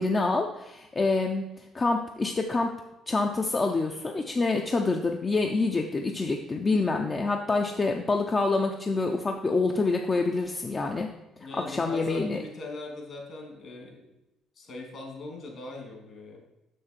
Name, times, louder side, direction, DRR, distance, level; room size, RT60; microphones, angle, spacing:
voice 1, 0.0-2.8 3.1-11.1 11.5-12.4, left 3 dB, 30° left, 3 dB, 0.6 m, -27 dB
voice 2, 11.4-14.0 14.6-16.4, left 3 dB, 55° left, 1 dB, 2.5 m, -40 dB
6.4 x 6.0 x 4.4 m, 0.93 s
supercardioid pair, 75°, 0 cm